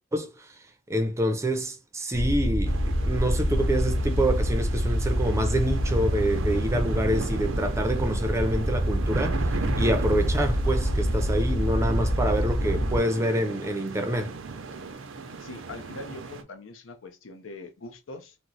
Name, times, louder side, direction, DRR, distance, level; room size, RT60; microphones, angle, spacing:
voice 1, 0.9-9.4 9.7-14.3, right 1 dB, 15° right, 0.5 m, -27 dB
sound 1, 2.1-13.0, equal, 55° left, 1.4 m, -26 dB
sound 2, 2.7-16.4, right 4 dB, 90° right, 0.6 m, -36 dB
voice 2, 15.3-18.4, left 2 dB, 85° left, 0.6 m, -42 dB
3.0 x 2.0 x 3.8 m
head